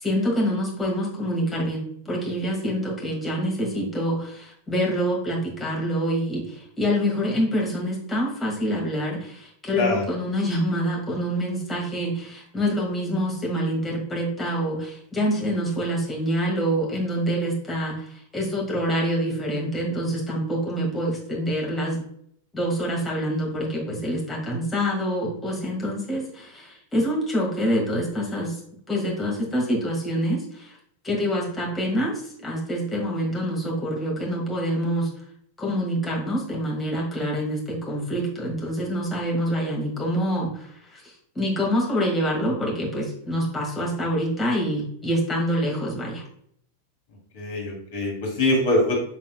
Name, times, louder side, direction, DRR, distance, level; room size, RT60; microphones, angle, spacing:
voice 1, 0.0-18.0 18.3-22.0 22.5-28.5 28.9-30.7 31.0-32.1 32.4-35.1 35.6-40.7 40.9-41.0 41.4-46.2, equal, 15° left, -3 dB, 1.7 m, -26 dB
voice 2, 9.8-10.1 47.3-49.0, left 2 dB, 50° left, -1 dB, 1.7 m, -23 dB
6.3 x 3.5 x 2.2 m, 0.66 s
figure-of-eight pair, 90°, 0 cm